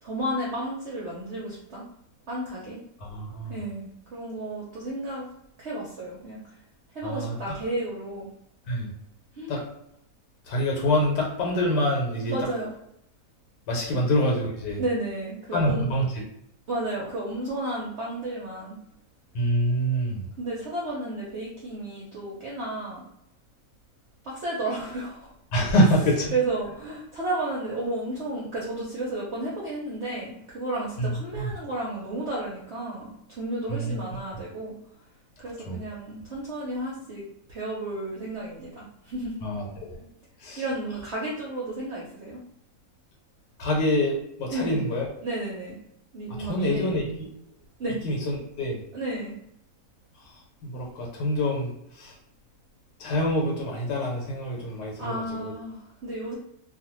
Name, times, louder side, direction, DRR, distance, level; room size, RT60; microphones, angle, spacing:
voice 1, 0.0-1.8 2.3-2.8 3.5-5.3 5.6-6.4 6.9-8.3 9.3-9.5 12.3-12.7 13.9-14.0 14.8-15.8 16.7-18.8 20.4-23.0 24.2-25.3 25.8-34.7 35.4-37.2 37.5-39.4 40.6-42.4 44.5-44.8 45.2-45.8 46.1-47.0 47.8-48.0 48.9-49.3 55.0-56.4, right 1 dB, 60° right, -5 dB, 0.7 m, -32 dB
voice 2, 3.0-3.6 7.0-7.4 8.7-8.9 9.5-9.6 10.5-12.3 13.7-14.8 15.5-16.0 19.3-20.2 25.5-26.3 31.0-31.1 33.7-33.9 35.7-35.8 39.4-40.0 40.4-40.6 43.6-44.1 44.4-45.0 46.4-47.0 48.0-48.8 50.6-51.7 52.0-52.1 53.0-55.1 55.4-55.5, equal, 85° left, -1 dB, 1.4 m, -25 dB
2.6 x 2.4 x 2.9 m, 0.79 s
omnidirectional pair, 1.8 m